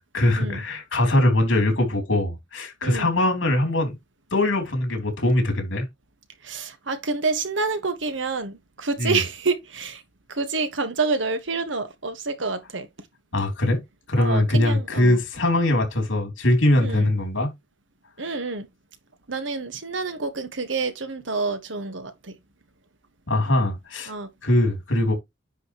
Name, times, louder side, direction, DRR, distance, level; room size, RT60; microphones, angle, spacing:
voice 1, 0.1-4.0 4.3-5.8 9.0-9.2 13.3-13.8 14.1-17.5 23.3-24.1 24.4-25.1, left 1 dB, 80° left, 3.4 m, -21 dB
voice 2, 2.8-3.1 6.4-10.0 10.3-12.9 14.1-15.2 16.8-17.1 18.2-18.7 19.3-22.3 24.1-24.3, right 4 dB, 70° right, 1.5 m, -28 dB
9.9 x 5.2 x 3.1 m
head